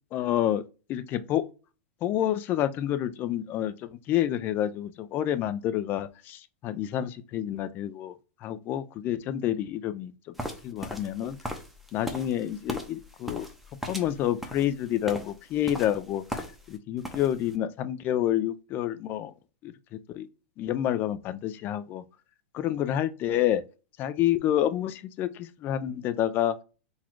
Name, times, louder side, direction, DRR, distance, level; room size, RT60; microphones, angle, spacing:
voice 1, 0.1-0.6 0.9-1.4 2.0-8.1 8.4-10.1 10.6-11.4 11.9-13.5 13.9-19.3 19.6-19.7 20.1-20.3 20.6-22.0 22.5-23.6 24.0-26.6, left 11 dB, 30° left, 0.4 m, -28 dB
sound 1, 10.4-16.8 17.0-17.5, equal, ahead, 0.7 m, -38 dB
4.0 x 2.4 x 4.6 m
hypercardioid pair, 140°, 7 cm